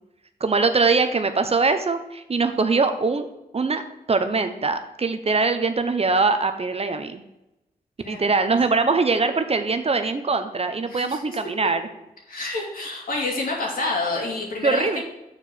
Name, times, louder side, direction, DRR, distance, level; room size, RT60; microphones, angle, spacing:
voice 1, 0.4-3.3 3.5-3.8 4.1-7.2 8.1-11.9 14.6-15.0, right 4 dB, 40° right, 9 dB, 0.7 m, -22 dB
voice 2, 10.9-11.4 12.3-15.0, left 2 dB, 65° left, -2 dB, 2.7 m, -28 dB
6.8 x 4.6 x 6.9 m, 0.91 s
cardioid pair, 65°, 16 cm